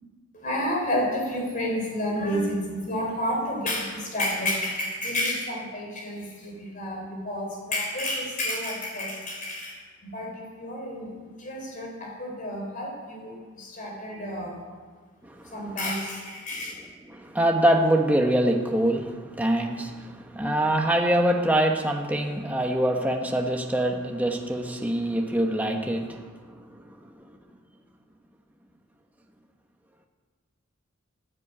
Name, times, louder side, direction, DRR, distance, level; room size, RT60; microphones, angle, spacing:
voice 1, 0.4-9.8 10.0-14.5 15.5-16.7, left 1 dB, 40° left, 0 dB, 4.3 m, -30 dB
voice 2, 15.2-15.6 17.1-26.7 27.0-27.3, right 1 dB, 10° right, 2 dB, 1.1 m, -24 dB
15.5 x 8.5 x 8.5 m, 1.5 s
head